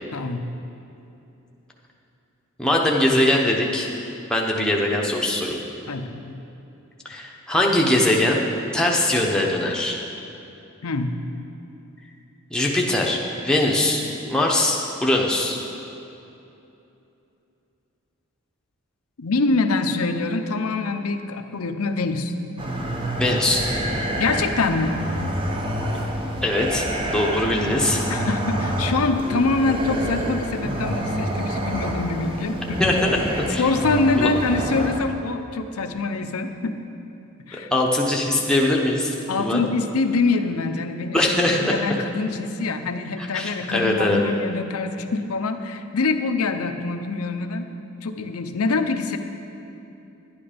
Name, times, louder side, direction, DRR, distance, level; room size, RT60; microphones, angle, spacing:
voice 1, 0.1-0.5 5.9-6.4 10.8-11.2 19.2-22.3 24.2-24.9 28.1-32.8 33.6-36.8 37.5-37.7 39.3-47.7 48.0-49.2, left 3 dB, 80° left, 7 dB, 0.7 m, -24 dB
voice 2, 2.6-3.9 4.3-5.6 7.0-8.5 8.7-10.0 12.5-14.0 14.3-15.6 23.2-23.6 26.4-26.9 27.1-28.0 29.3-29.4 32.8-33.7 34.2-34.3 37.5-39.6 41.1-41.7 43.2-44.2, left 1 dB, 5° left, -2 dB, 0.9 m, -21 dB
sound 1, 22.6-35.0, right 1 dB, 25° right, 0.8 m, -27 dB
11.0 x 9.9 x 5.1 m, 2.8 s
head